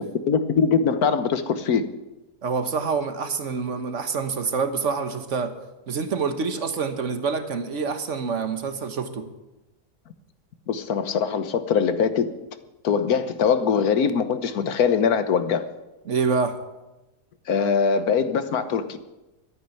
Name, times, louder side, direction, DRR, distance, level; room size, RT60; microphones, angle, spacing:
voice 1, 0.0-1.9 10.7-12.3 12.8-15.7 17.5-19.0, left 6 dB, 70° left, 1.5 m, -22 dB
voice 2, 2.4-5.5 5.9-9.3 16.1-16.6, right 5 dB, 50° right, 1.5 m, -26 dB
12.5 x 10.0 x 9.0 m
omnidirectional pair, 1.7 m